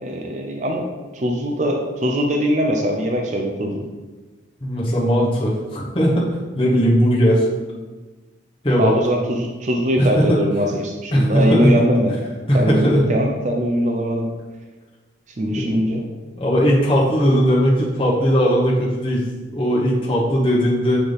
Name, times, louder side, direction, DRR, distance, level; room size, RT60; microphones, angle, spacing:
voice 1, 0.0-0.8 1.1-3.8 8.7-12.1 12.5-14.3 15.4-16.0, equal, 40° right, 1 dB, 0.5 m, -21 dB
voice 2, 4.6-6.3 6.5-7.5 8.6-8.9 10.0-10.4 11.1-11.7 12.5-13.0 15.5-15.7 16.4-19.2 19.5-21.0, equal, 30° left, -5 dB, 1.1 m, -18 dB
7.9 x 3.4 x 4.0 m, 1.2 s
head